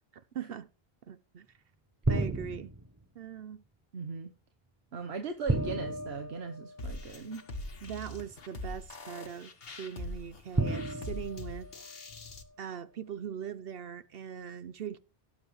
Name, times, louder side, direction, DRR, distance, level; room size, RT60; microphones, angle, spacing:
voice 1, 0.3-0.7 1.1-1.5 2.1-2.7 3.1-3.6 7.8-11.7 12.6-15.0, right 8 dB, 70° right, 0.9 m, -41 dB
sound 1, 2.0-3.0 5.5-7.1 8.3-8.4 10.5-12.3, right 2 dB, 20° right, 0.7 m, -33 dB
voice 2, 3.9-4.3 4.9-7.4, right 5 dB, 85° right, 1.3 m, -39 dB
sound 2, 6.8-12.4, left 1 dB, 70° left, 1.5 m, -43 dB
17.5 x 7.5 x 3.2 m
omnidirectional pair, 1.0 m